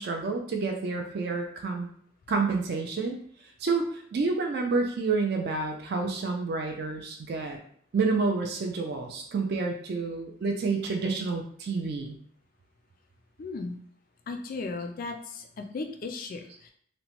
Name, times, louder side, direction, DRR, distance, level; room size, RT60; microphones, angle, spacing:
voice 1, 0.0-1.9 2.3-3.2 3.6-7.6 7.9-12.2, right 4 dB, 50° right, 2 dB, 0.3 m, -29 dB
voice 2, 13.4-13.8 14.3-16.7, left 3 dB, 40° left, 5 dB, 0.3 m, -36 dB
2.9 x 2.1 x 2.9 m, 0.62 s
head